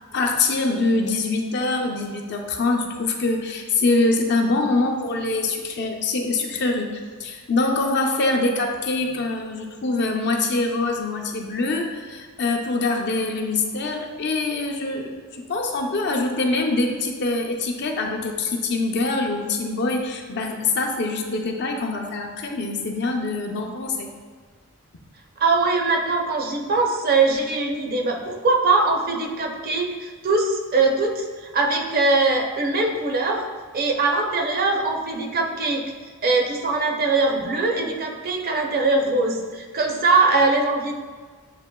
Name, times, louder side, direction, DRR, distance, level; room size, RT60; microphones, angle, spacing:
voice 1, 0.1-24.1, left 3 dB, 55° left, 2 dB, 0.5 m, -24 dB
voice 2, 25.4-33.4 33.7-35.8 36.2-40.9, right 3 dB, 45° right, 2 dB, 0.5 m, -21 dB
7.4 x 2.8 x 2.2 m, 1.5 s
head